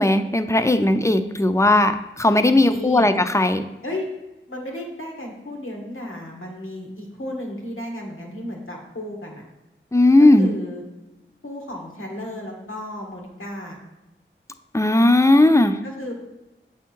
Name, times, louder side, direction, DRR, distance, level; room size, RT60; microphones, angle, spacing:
voice 1, 0.0-3.7 9.9-10.5 14.7-15.8, left 2 dB, 15° left, 9 dB, 0.4 m, -17 dB
voice 2, 2.6-3.1 3.8-4.1 4.5-9.4 10.2-10.8 11.4-13.8 15.8-16.1, left 1 dB, 80° left, -1 dB, 1.5 m, -33 dB
8.2 x 3.5 x 4.6 m, 1.0 s
wide cardioid pair, 45°, 21 cm